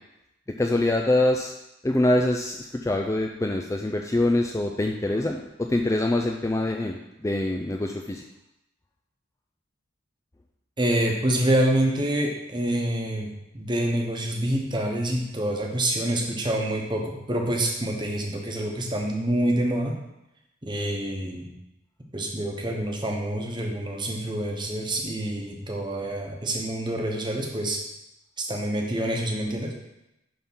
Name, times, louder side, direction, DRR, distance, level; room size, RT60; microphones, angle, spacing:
voice 1, 0.6-1.5 1.8-8.2, left 1 dB, 15° left, 2 dB, 0.3 m, -24 dB
voice 2, 10.8-19.9 20.6-21.5 22.1-27.8 28.4-29.7, right 1 dB, 20° right, 1 dB, 1.1 m, -27 dB
10.5 x 3.7 x 5.5 m, 0.89 s
head